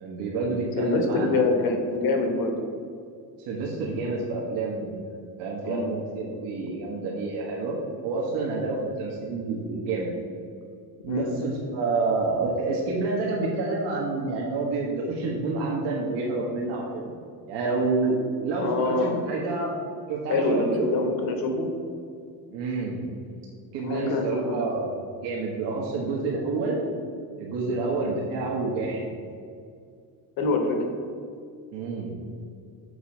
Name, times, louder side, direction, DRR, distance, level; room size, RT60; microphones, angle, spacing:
voice 1, 0.0-1.6 3.4-5.0 5.4-10.1 11.0-17.1 17.5-19.7 20.1-20.9 22.5-23.0 23.7-26.8 27.4-29.1 31.7-32.1, right 3 dB, 85° right, -3 dB, 1.3 m, -28 dB
voice 2, 0.8-2.6 5.6-5.9 11.1-11.3 18.6-19.2 20.3-21.7 23.8-24.7 30.4-30.9, left 3 dB, 55° left, 4 dB, 1.1 m, -25 dB
6.8 x 4.4 x 5.2 m, 2.3 s
cardioid pair, 175°, 41 cm